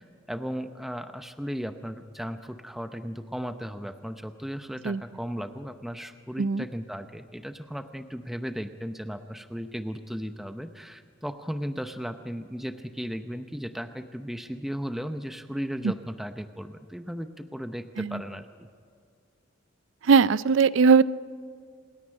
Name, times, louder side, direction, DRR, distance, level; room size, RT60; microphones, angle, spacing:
voice 1, 0.0-18.7, equal, ahead, 8 dB, 0.7 m, -36 dB
voice 2, 20.1-21.0, right 5 dB, 70° right, 18 dB, 0.4 m, -19 dB
27.0 x 9.9 x 9.8 m, 2.2 s
head